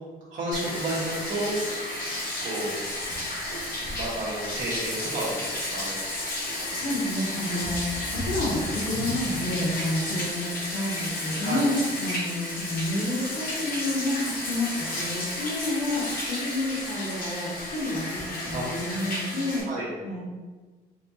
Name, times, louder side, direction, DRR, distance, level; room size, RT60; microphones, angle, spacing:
voice 1, 0.3-1.6 2.4-2.8 3.9-6.0 6.5-6.8 11.4-11.7 18.5-18.6 19.7-19.8, right 1 dB, 50° right, -7 dB, 1.2 m, -31 dB
Bathtub (filling or washing), 0.5-19.6, left 1 dB, 55° left, 1.4 m, -32 dB
voice 2, 6.7-19.7 20.0-20.3, left 1 dB, 70° left, -9 dB, 1.1 m, -29 dB
4.0 x 3.4 x 2.7 m, 1.3 s
cardioid pair, 110°, 17 cm